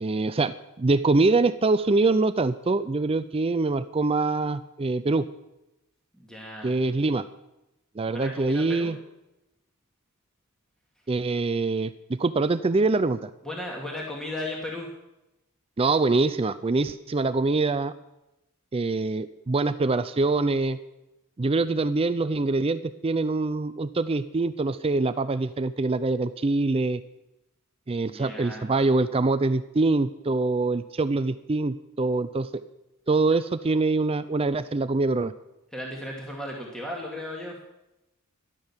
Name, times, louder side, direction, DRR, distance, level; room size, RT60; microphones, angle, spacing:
voice 1, 0.0-5.3 6.6-7.2 8.0-9.0 11.1-13.3 15.8-17.9 18.7-20.8 21.4-27.0 27.9-32.6 33.1-35.3, right 3 dB, 25° right, 13 dB, 0.4 m, -24 dB
voice 2, 6.2-6.8 8.1-8.9 13.4-14.9 28.1-28.7 35.7-37.5, left 1 dB, 5° left, -2 dB, 2.2 m, -35 dB
14.0 x 11.5 x 7.3 m, 0.93 s
head